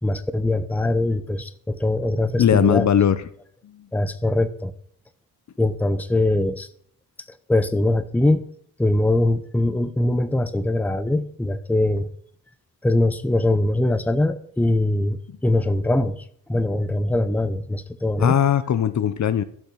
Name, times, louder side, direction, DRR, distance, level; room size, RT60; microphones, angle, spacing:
voice 1, 0.0-2.9 3.9-4.7 5.6-6.7 7.5-8.4 8.8-12.1 12.8-18.4, left 2 dB, 5° left, 11 dB, 0.7 m, -22 dB
voice 2, 2.4-3.2 3.6-3.9 18.2-19.4, left 9 dB, 45° left, 14 dB, 0.6 m, -19 dB
12.5 x 5.6 x 6.2 m, 0.62 s
cardioid pair, 95°, 39 cm